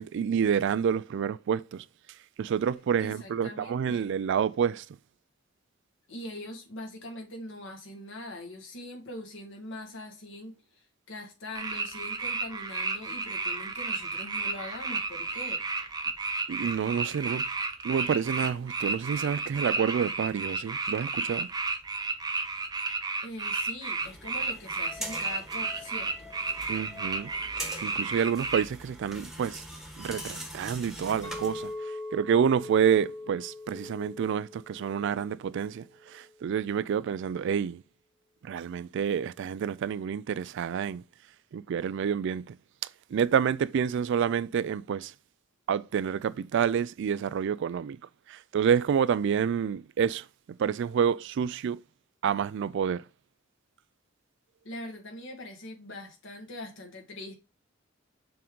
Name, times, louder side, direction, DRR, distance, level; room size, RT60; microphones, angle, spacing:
voice 1, 0.0-1.8 2.4-4.9 16.5-17.5 17.8-21.5 26.7-27.3 27.6-29.6 30.0-37.8 38.4-41.0 41.5-42.5 43.1-45.1 45.7-48.0 48.3-51.8 52.2-53.0, right 7 dB, 60° right, 0.3 m, -28 dB
voice 2, 3.0-4.0 6.1-15.6 23.2-26.1 54.6-57.3, left 1 dB, 65° left, 1.7 m, -42 dB
sound 1, 11.5-28.6, right 3 dB, 20° right, 0.7 m, -32 dB
sound 2, 24.0-31.7, equal, ahead, 1.2 m, -43 dB
Chink clink, 31.2-35.6 35.9-36.3, left 2 dB, 20° left, 1.4 m, -41 dB
6.8 x 3.8 x 3.7 m
head